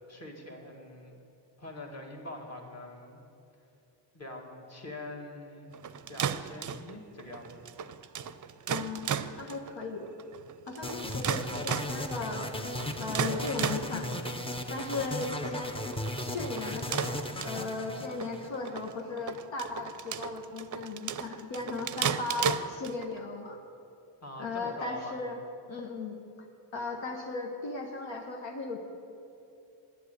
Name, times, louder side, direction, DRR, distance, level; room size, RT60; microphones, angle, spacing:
voice 1, 0.1-1.1 1.6-3.2 4.1-5.7 6.1-7.5 24.2-25.2, left 2 dB, 35° left, 1 dB, 1.9 m, -43 dB
sound 1, 5.7-23.2, right 7 dB, 45° right, 0.5 m, -36 dB
voice 2, 8.7-10.1 10.7-12.5 13.0-14.2 14.7-15.8 16.2-23.6 24.4-25.4 25.7-26.2 26.7-28.8, left 3 dB, 80° left, 2 dB, 1.2 m, -37 dB
sound 2, 10.8-18.9, left 1 dB, 10° left, 0.7 m, -36 dB
10.0 x 8.1 x 8.1 m, 2.7 s
cardioid pair, 90°, 45 cm